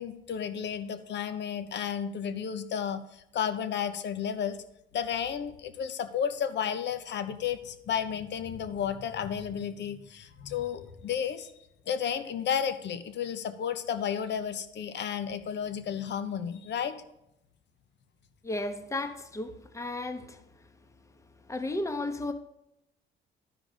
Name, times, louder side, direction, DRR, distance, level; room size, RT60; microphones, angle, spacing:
voice 1, 0.0-4.6 4.9-11.5 11.9-16.9, left 8 dB, 65° left, 0.9 m, -32 dB
voice 2, 18.4-20.4 21.5-22.3, left 2 dB, 15° left, 0.9 m, -34 dB
12.0 x 5.0 x 5.0 m
cardioid pair, 90°, 20 cm